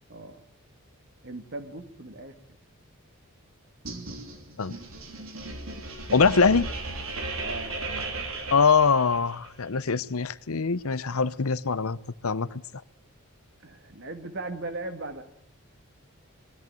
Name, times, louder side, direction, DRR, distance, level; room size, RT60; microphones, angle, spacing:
voice 1, 0.1-0.5 1.2-2.4 7.4-7.9 13.6-15.2, right 2 dB, 55° right, 2.2 m, -38 dB
sound 1, 3.8-9.5, right 2 dB, 70° right, 3.3 m, -36 dB
voice 2, 6.1-6.7 8.5-12.0 12.2-12.5, left 5 dB, 80° left, 0.8 m, -23 dB
21.0 x 14.0 x 8.9 m
head